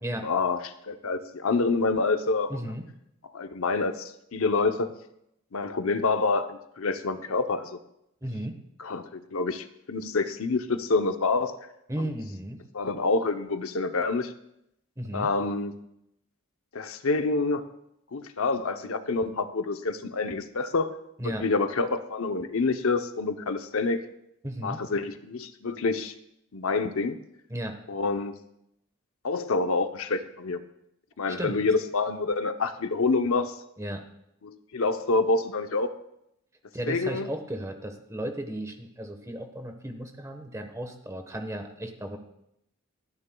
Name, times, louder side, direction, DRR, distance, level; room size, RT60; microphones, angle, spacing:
voice 1, 0.2-2.5 3.3-4.9 5.5-7.8 8.8-11.6 12.7-14.3 15.1-15.7 16.7-17.7 18.1-20.9 21.2-24.0 24.6-26.1 26.5-27.2 27.9-28.4 29.2-30.6 31.2-33.6 34.4-35.9 36.9-37.3, left 3 dB, 75° left, 8 dB, 0.7 m, -27 dB
voice 2, 2.5-2.9 8.2-8.6 11.9-12.6 15.0-15.3 21.2-21.5 24.4-24.8 27.5-27.8 31.3-31.6 33.8-34.0 36.7-42.2, right 1 dB, 15° right, 5 dB, 1.1 m, -35 dB
29.0 x 9.8 x 2.3 m, 0.79 s
head